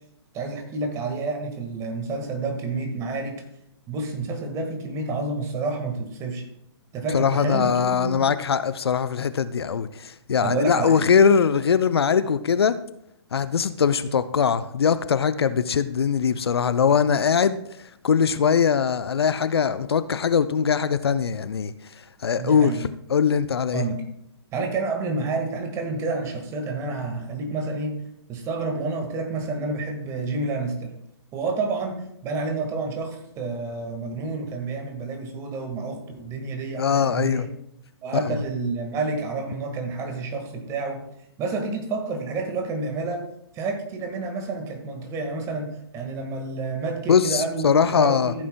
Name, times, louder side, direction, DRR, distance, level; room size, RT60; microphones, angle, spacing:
voice 1, 0.3-3.4 3.9-6.4 6.9-8.3 10.4-11.1 22.4-22.8 23.7-24.0 24.5-28.0 28.3-30.9 31.3-32.0 32.2-37.5 38.0-41.0 41.4-43.2 43.5-48.5, right 3 dB, 20° right, 1.6 m, -29 dB
voice 2, 7.1-12.8 13.3-17.6 18.0-21.7 22.2-22.7 23.1-23.8 36.8-37.5 38.1-38.4 47.1-48.3, left 7 dB, 65° left, 0.5 m, -21 dB
14.5 x 8.4 x 2.2 m
figure-of-eight pair, 125°, 14 cm